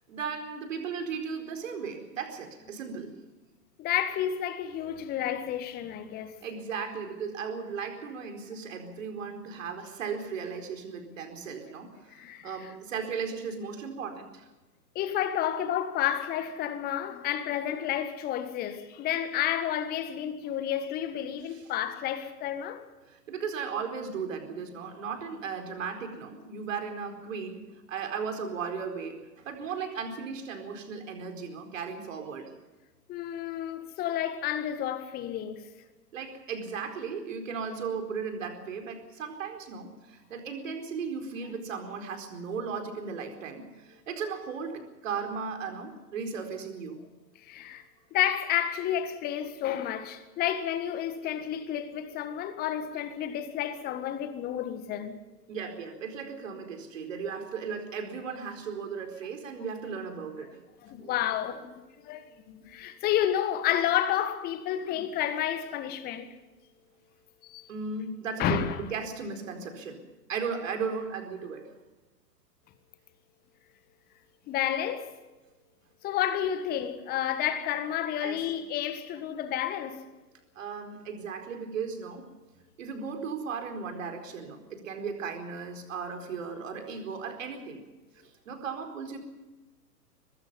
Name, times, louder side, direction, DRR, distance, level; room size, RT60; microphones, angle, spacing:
voice 1, 0.1-3.1 6.4-14.5 21.5-21.6 23.1-32.5 36.1-47.0 55.5-60.6 61.0-61.1 67.7-70.0 70.3-71.6 78.2-78.4 80.5-82.3 82.8-87.8 88.2-89.2, right 5 dB, 50° right, 4.5 m, -36 dB
voice 2, 3.8-6.4 12.1-12.5 14.9-22.8 33.1-35.6 47.4-47.8 48.1-55.2 60.8-66.3 67.4-67.7 68.4-68.8 74.5-75.1 76.0-80.0, left 10 dB, 20° left, 1.6 m, -30 dB
23.5 x 20.5 x 5.6 m
figure-of-eight pair, 115°, 49 cm